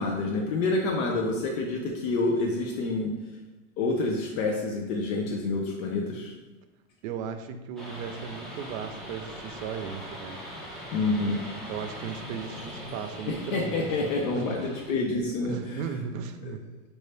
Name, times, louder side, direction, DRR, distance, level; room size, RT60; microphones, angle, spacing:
voice 1, 0.0-3.1 3.8-6.3 10.9-11.4 13.3-15.9 16.4-16.5, left 3 dB, 80° left, 0 dB, 0.7 m, -28 dB
voice 2, 7.0-10.4 11.7-13.9 14.3-14.7 15.4-16.6, right 6 dB, 80° right, 8 dB, 0.5 m, -36 dB
sound 1, 7.8-14.9, equal, ahead, 0.3 m, -41 dB
4.6 x 2.7 x 3.3 m, 1.1 s
supercardioid pair, 145°, 39 cm